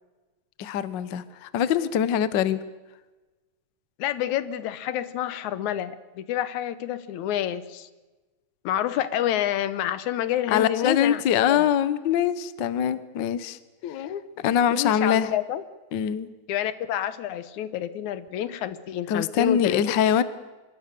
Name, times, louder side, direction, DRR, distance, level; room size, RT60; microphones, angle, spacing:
voice 1, 0.6-2.6 10.5-13.6 14.4-15.3 15.9-16.3 19.1-20.2, left 9 dB, 65° left, 14 dB, 1.1 m, -23 dB
voice 2, 4.0-7.9 8.6-11.2 11.5-11.7 13.8-14.2 14.7-15.6 16.5-19.8, left 11 dB, 80° left, 14 dB, 2.4 m, -28 dB
25.0 x 23.0 x 6.8 m, 1.2 s
omnidirectional pair, 3.3 m